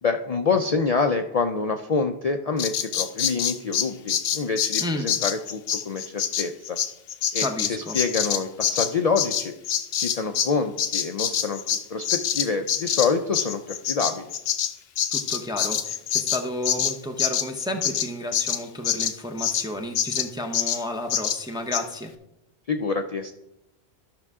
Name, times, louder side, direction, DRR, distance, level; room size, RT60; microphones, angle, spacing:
voice 1, 0.0-6.8 7.3-9.5 10.0-11.6 11.9-14.3 22.7-23.3, left 4 dB, 50° left, 5 dB, 0.5 m, -26 dB
Bird vocalization bird call bird song, 2.6-10.5 10.8-19.7 20.0-20.3 20.5-20.8 21.1-21.4 21.7-21.8, left 9 dB, 70° left, 0.8 m, -26 dB
voice 2, 4.8-5.1 7.4-8.0 15.1-22.1, left 1 dB, 5° right, 4 dB, 0.5 m, -32 dB
13.0 x 6.0 x 3.6 m, 0.88 s
omnidirectional pair, 1.1 m